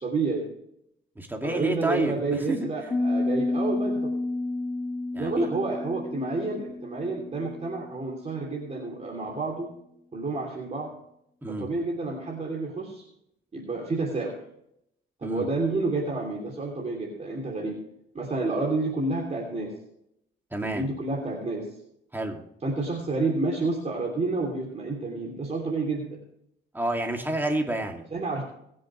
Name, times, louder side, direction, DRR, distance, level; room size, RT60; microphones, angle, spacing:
voice 1, 0.0-0.5 1.4-4.1 5.1-9.7 10.1-10.9 11.5-13.1 13.5-14.4 15.2-17.8 18.1-19.7 20.6-21.7 22.6-26.2 28.1-28.4, right 3 dB, 35° right, -1 dB, 3.1 m, -29 dB
voice 2, 1.2-3.0 5.1-5.5 11.4-11.7 15.2-15.5 20.5-20.8 22.1-22.4 26.7-28.0, right 1 dB, 10° right, 2 dB, 2.4 m, -30 dB
Piano, 2.9-8.5, left 2 dB, 15° left, 1.9 m, -31 dB
22.0 x 7.7 x 3.2 m, 0.77 s
cardioid pair, 90°, 20 cm